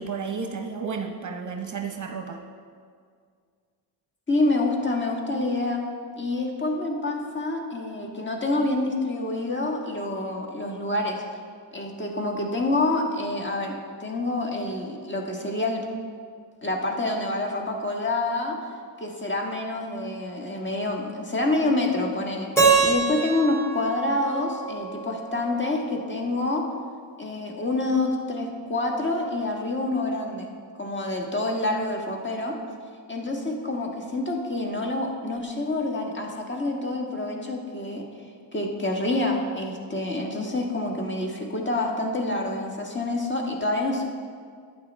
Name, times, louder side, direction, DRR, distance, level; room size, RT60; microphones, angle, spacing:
voice 1, 0.0-2.4, right 5 dB, 40° right, 4 dB, 0.8 m, -32 dB
voice 2, 4.3-5.8 6.2-11.2 11.7-15.9 16.6-18.6 19.0-22.5 22.8-26.6 27.2-30.5 30.8-32.6 33.1-38.1 38.5-44.1, left 2 dB, 25° left, 1 dB, 1.5 m, -27 dB
Keyboard (musical), 22.6-25.5, right 4 dB, 5° left, 2.8 m, -24 dB
12.0 x 8.7 x 3.4 m, 2.1 s
cardioid pair, 85°, 46 cm